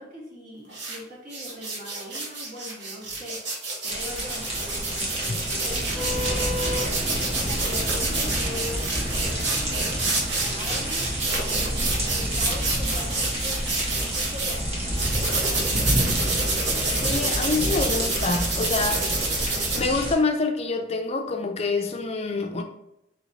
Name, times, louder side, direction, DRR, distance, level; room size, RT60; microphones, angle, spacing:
voice 1, 0.0-3.5 3.8-15.7, equal, 50° right, 1.6 m, -41 dB
sound 1, 0.7-1.0 1.3-14.6 15.0-19.8, right 3 dB, 70° right, 1.2 m, -28 dB
sound 2, 3.8-20.1, equal, 35° right, 1.3 m, -29 dB
sound 3, 6.0-10.9, left 1 dB, 10° right, 0.8 m, -36 dB
voice 2, 17.0-19.0 19.7-22.6, left 3 dB, 35° left, 0.5 m, -26 dB
4.2 x 3.9 x 3.1 m
head